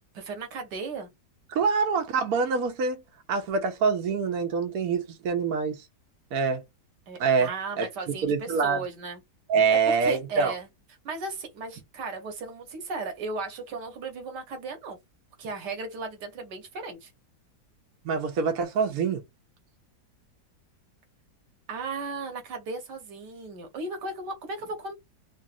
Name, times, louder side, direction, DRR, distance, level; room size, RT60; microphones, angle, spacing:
voice 1, 0.1-1.1 7.1-9.2 9.7-10.7 11.0-15.0 15.4-17.1 21.7-24.9, right 3 dB, 80° right, 1.5 m, -36 dB
voice 2, 1.5-3.0 3.3-5.8 6.3-6.6 7.2-7.9 8.2-8.8 9.5-10.5 18.0-19.2, right 5 dB, 65° right, 1.2 m, -25 dB
3.9 x 2.0 x 2.4 m
omnidirectional pair, 1.8 m